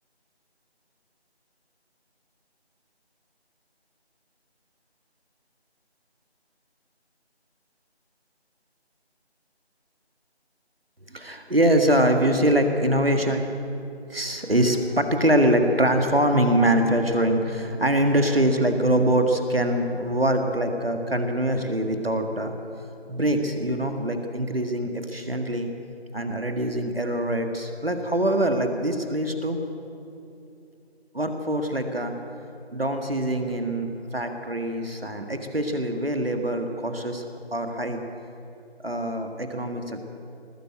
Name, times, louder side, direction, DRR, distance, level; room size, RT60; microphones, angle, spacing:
voice 1, 11.1-13.4 14.1-22.5 23.1-25.7 26.1-29.6 31.1-32.1 32.7-37.2 37.5-38.0 38.8-40.0, right 1 dB, 60° right, 5 dB, 1.7 m, -24 dB
19.0 x 9.2 x 7.9 m, 2.7 s
figure-of-eight pair, 175°, 33 cm